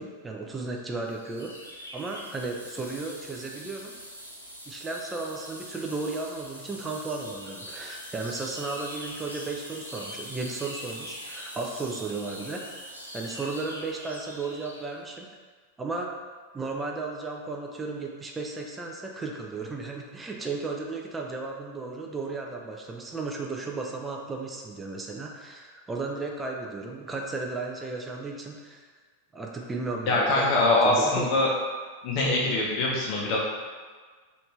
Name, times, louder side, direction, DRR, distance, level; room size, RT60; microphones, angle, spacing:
voice 1, 0.0-1.6 1.9-4.0 4.7-12.7 13.1-15.3 15.8-16.1 16.5-28.8 29.3-31.3, right 3 dB, 15° right, 0 dB, 0.4 m, -34 dB
sound 1, 1.1-14.9, equal, 90° right, 0.5 m, -43 dB
voice 2, 30.1-31.5 32.0-33.4, left 2 dB, 45° left, -4 dB, 0.6 m, -23 dB
3.1 x 2.5 x 3.0 m, 1.5 s
figure-of-eight pair, 90°, 0 cm